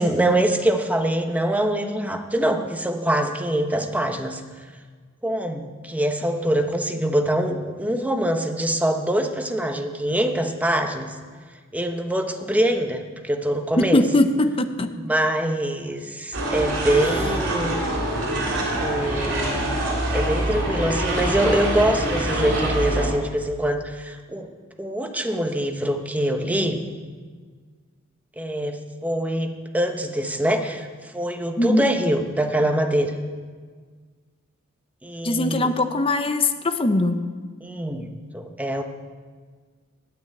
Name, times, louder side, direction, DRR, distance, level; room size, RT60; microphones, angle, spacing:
voice 1, 0.0-4.4 5.2-11.1 11.7-14.0 14.9-17.7 18.8-19.6 20.1-24.5 24.8-26.8 28.4-33.1 35.0-35.7 37.6-38.1 38.3-38.8, right 1 dB, 5° right, 5 dB, 1.0 m, -24 dB
voice 2, 13.8-14.9 31.6-31.8 35.2-37.2, left 2 dB, 25° left, 8 dB, 0.8 m, -21 dB
sound 1, 16.3-23.1, right 1 dB, 60° right, 3.2 m, -25 dB
9.2 x 9.2 x 9.1 m, 1.6 s
head